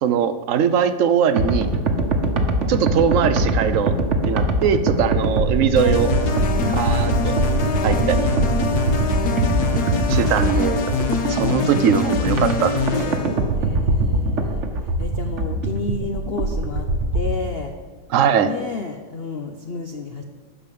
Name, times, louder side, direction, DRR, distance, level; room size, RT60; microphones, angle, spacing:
voice 1, 0.0-1.7 2.7-3.9 4.2-6.1 6.7-7.4 7.8-8.3 10.1-10.8 11.3-13.2 18.1-18.6, right 8 dB, 70° right, 11 dB, 0.7 m, -21 dB
sound 1, 1.4-17.4, right 1 dB, 45° right, 1.2 m, -22 dB
sound 2, 5.8-13.4, left 4 dB, 60° left, 1.5 m, -24 dB
voice 2, 13.5-16.9 17.1-17.7 18.4-20.2, left 4 dB, 75° left, 5 dB, 0.5 m, -31 dB
12.5 x 5.1 x 8.4 m, 1.4 s
omnidirectional pair, 2.0 m